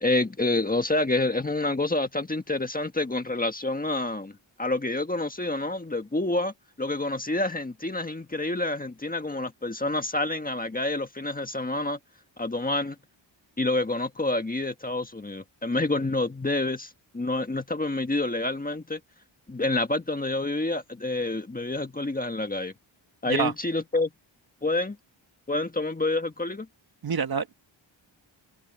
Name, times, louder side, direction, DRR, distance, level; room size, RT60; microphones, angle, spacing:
voice 1, 0.0-12.0 12.4-13.0 13.6-19.0 19.5-22.7 23.2-24.1 24.6-25.0 25.5-26.7, left 2 dB, 20° left, 1.5 m, -28 dB
voice 2, 27.0-27.5, right 6 dB, 50° right, 1.5 m, -26 dB
wide cardioid pair, 125°, 47 cm